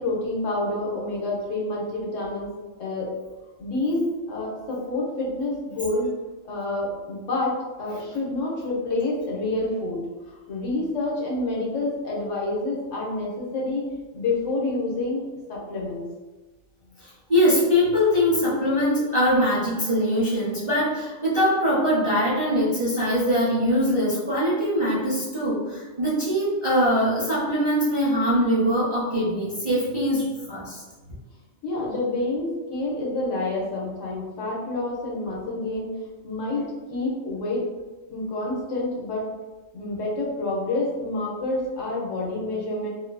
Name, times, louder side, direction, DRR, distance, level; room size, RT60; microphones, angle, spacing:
voice 1, 0.0-2.5 2.8-3.2 3.6-6.1 6.4-13.8 14.1-16.1 31.6-35.9 36.2-37.6 38.1-39.2 39.7-42.9, left 2 dB, 80° left, -4 dB, 1.1 m, -28 dB
voice 2, 17.0-30.8, equal, 35° right, -8 dB, 0.5 m, -22 dB
2.7 x 2.4 x 2.2 m, 1.2 s
omnidirectional pair, 1.3 m